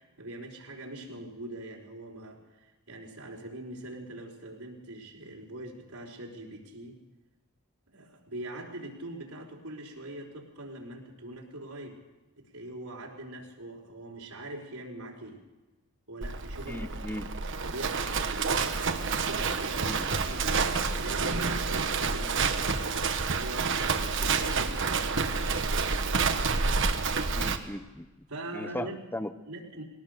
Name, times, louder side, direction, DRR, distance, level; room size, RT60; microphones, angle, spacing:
voice 1, 0.0-7.0 7.9-12.0 12.4-15.4 16.1-17.1 17.6-18.4 19.2-23.8 24.2-25.9 28.3-29.0 29.5-29.8, right 1 dB, 85° right, -1 dB, 4.6 m, -43 dB
Livestock farm animals working animals, 16.2-27.6, right 4 dB, 60° right, 1.3 m, -28 dB
voice 2, 16.7-17.3 19.9-20.1 27.4-28.1 28.5-29.3, left 1 dB, 10° left, 12 dB, 0.8 m, -37 dB
21.5 x 18.0 x 6.8 m, 1.1 s
head